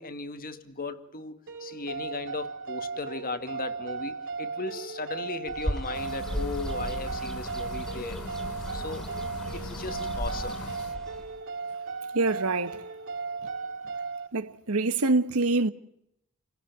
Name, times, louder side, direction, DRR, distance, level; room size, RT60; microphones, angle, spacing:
voice 1, 0.0-8.2 8.7-9.1 9.5-10.6, left 3 dB, 40° left, 1.9 m, -37 dB
sound 1, 1.5-14.3, right 4 dB, 60° right, 4.6 m, -36 dB
Bird, 5.5-11.4, equal, ahead, 2.8 m, -37 dB
sound 2, 5.9-11.0, left 2 dB, 85° left, 1.5 m, -42 dB
voice 2, 12.1-12.8 14.3-15.7, right 3 dB, 75° right, 1.3 m, -25 dB
29.0 x 17.0 x 9.4 m
head